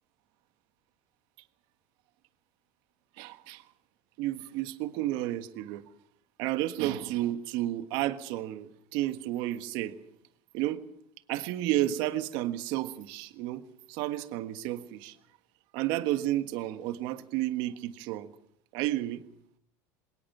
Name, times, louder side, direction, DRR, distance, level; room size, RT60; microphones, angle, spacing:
voice 1, 3.2-3.6 4.2-5.8 6.4-9.9 10.5-10.8 11.3-13.6 13.9-15.2 15.7-18.3 18.7-19.2, right 14 dB, 65° right, 10 dB, 1.5 m, -31 dB
20.5 x 18.5 x 7.2 m, 0.71 s
supercardioid pair, 105°, 9 cm